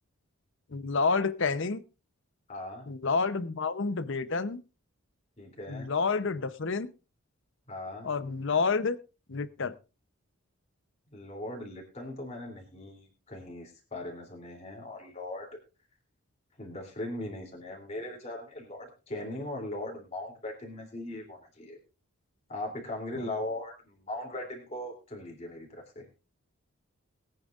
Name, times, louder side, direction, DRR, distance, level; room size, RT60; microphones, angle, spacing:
voice 1, 0.7-1.8 2.9-4.6 5.7-6.9 8.0-9.0 9.3-9.7 23.2-23.3, left 4 dB, 55° left, 15 dB, 0.7 m, -29 dB
voice 2, 2.5-2.9 5.4-5.9 7.7-8.1 11.1-15.5 16.6-21.8 22.5-26.1, left 1 dB, 30° left, 1 dB, 3.0 m, -39 dB
21.5 x 9.1 x 2.4 m, 0.30 s
head